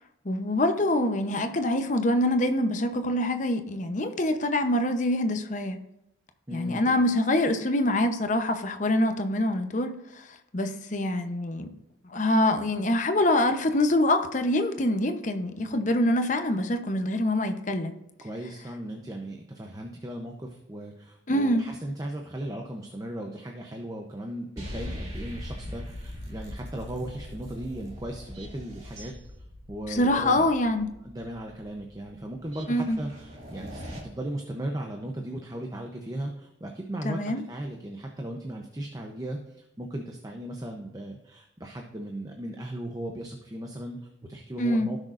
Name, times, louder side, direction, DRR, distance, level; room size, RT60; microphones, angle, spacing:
voice 1, 0.2-5.8 6.5-9.9 10.5-11.7 12.1-18.0 21.3-21.6 29.9-30.9 32.7-33.0 37.0-37.4 44.6-44.9, left 1 dB, 40° left, 7 dB, 0.8 m, -25 dB
voice 2, 6.5-7.0 15.6-15.8 18.2-29.1 29.7-30.4 31.0-37.2 37.5-45.0, right 1 dB, 20° right, 2 dB, 0.7 m, -37 dB
sound 1, 24.6-34.0, left 1 dB, 35° right, 2.5 m, -41 dB
16.0 x 6.4 x 2.6 m, 0.85 s
head